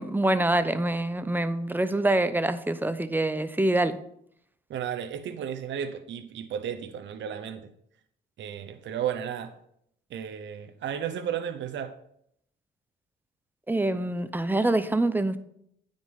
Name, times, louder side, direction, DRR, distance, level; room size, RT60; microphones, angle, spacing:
voice 1, 0.0-4.0 13.7-15.4, right 2 dB, 10° right, 0.7 m, -25 dB
voice 2, 4.7-7.7 8.4-9.5 10.1-12.0, right 9 dB, 70° right, 0.9 m, -33 dB
9.4 x 5.2 x 5.4 m
cardioid pair, 90°, 20 cm